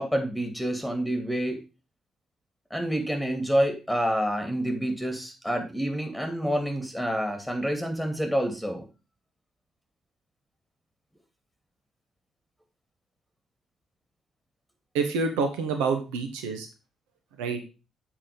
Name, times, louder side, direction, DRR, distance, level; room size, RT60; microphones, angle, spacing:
voice 1, 0.0-1.6 2.7-8.8, equal, ahead, 4 dB, 2.5 m, -28 dB
voice 2, 14.9-16.7 17.4-17.6, right 4 dB, 70° right, 6 dB, 1.0 m, -27 dB
7.6 x 4.9 x 5.0 m, 0.30 s
figure-of-eight pair, 40°, 0 cm